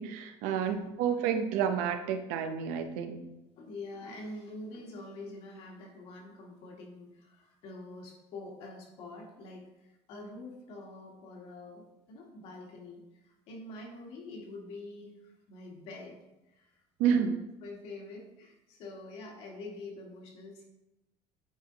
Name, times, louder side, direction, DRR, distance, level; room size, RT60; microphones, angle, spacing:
voice 1, 0.0-3.2 17.0-17.4, right 7 dB, 80° right, 7 dB, 0.8 m, -30 dB
voice 2, 0.5-0.9 3.6-16.2 16.4-17.3 17.6-20.6, left 2 dB, 55° left, -1 dB, 1.9 m, -46 dB
8.8 x 4.5 x 3.9 m, 0.95 s
cardioid pair, 170°, 12 cm